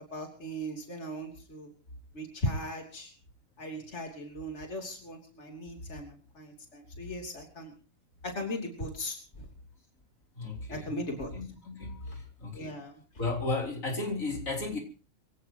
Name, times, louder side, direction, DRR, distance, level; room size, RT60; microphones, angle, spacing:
voice 1, 0.0-1.7 2.1-3.1 3.6-7.7 8.2-9.5 10.7-11.3 12.5-13.0, equal, 55° left, 3.5 m, -38 dB
voice 2, 10.3-10.9 11.3-12.8 13.2-14.8, left 3 dB, 80° left, 3.9 m, -34 dB
25.0 x 17.0 x 2.9 m
omnidirectional pair, 1.4 m